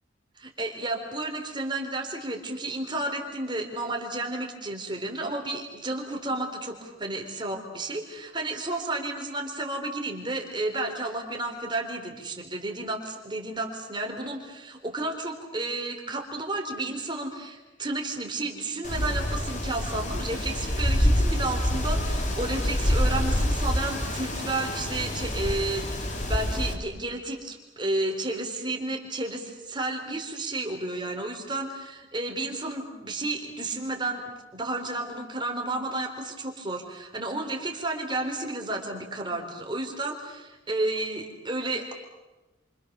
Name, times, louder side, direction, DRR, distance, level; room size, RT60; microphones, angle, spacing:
voice 1, 0.4-34.2 34.5-41.9, right 2 dB, 25° right, 2 dB, 4.0 m, -32 dB
Wind, 18.8-26.7, left 1 dB, 40° left, 3.1 m, -26 dB
29.5 x 26.0 x 6.9 m, 1.1 s
head